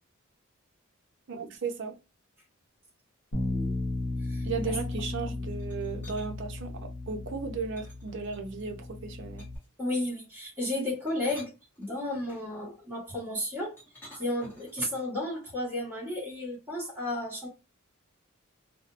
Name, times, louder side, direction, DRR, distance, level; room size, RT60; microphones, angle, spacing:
voice 1, 1.3-1.9 4.4-9.5, right 4 dB, 60° right, 0.5 m, -35 dB
Bass guitar, 3.3-9.6, left 2 dB, 70° left, 0.8 m, -35 dB
voice 2, 4.2-4.8 9.8-11.5 11.8-13.8 14.2-17.5, left 1 dB, 10° right, 1.1 m, -33 dB
sound 1, 5.6-6.3 7.8-8.7 9.4-9.8 10.9-12.2 13.8-15.1, left 1 dB, 10° left, 0.9 m, -51 dB
2.6 x 2.1 x 2.4 m
head